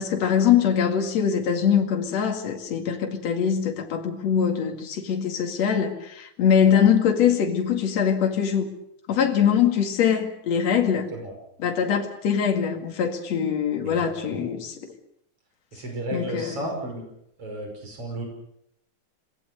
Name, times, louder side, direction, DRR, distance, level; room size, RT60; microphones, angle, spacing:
voice 1, 0.0-8.7 9.1-11.1 11.6-14.7 16.1-16.7, left 8 dB, 65° left, 4 dB, 3.3 m, -23 dB
voice 2, 13.8-14.4 15.7-17.1 17.4-18.3, right 1 dB, 50° right, 3 dB, 6.3 m, -33 dB
27.0 x 19.5 x 6.8 m, 0.73 s
omnidirectional pair, 3.3 m